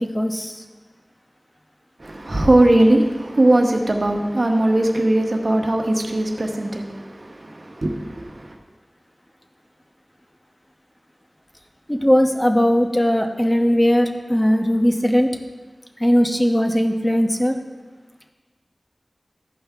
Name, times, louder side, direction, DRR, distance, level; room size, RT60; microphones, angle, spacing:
voice 1, 0.1-0.6 11.9-15.3 16.0-17.6, equal, 15° left, 4 dB, 1.0 m, -18 dB
voice 2, 2.0-8.6, right 1 dB, 60° right, 2 dB, 1.2 m, -19 dB
14.5 x 5.3 x 3.6 m, 1.3 s
wide cardioid pair, 50°, 0 cm